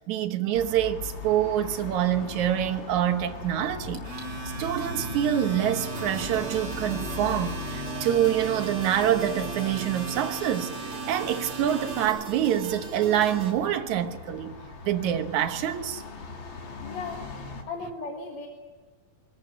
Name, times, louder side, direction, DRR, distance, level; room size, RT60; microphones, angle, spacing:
voice 1, 0.0-4.1 4.6-14.6 14.9-16.0, right 11 dB, 75° right, 2.4 m, -26 dB
sound 1, 0.5-17.6, left 4 dB, 45° left, 2.5 m, -40 dB
Domestic sounds home sounds, 3.9-12.1, right 3 dB, 30° right, 3.6 m, -38 dB
sound 2, 5.8-13.5, right 4 dB, 45° right, 3.4 m, -40 dB
voice 2, 16.8-17.2 17.7-18.5, left 3 dB, 65° left, 2.9 m, -36 dB
24.0 x 14.0 x 9.1 m
omnidirectional pair, 3.4 m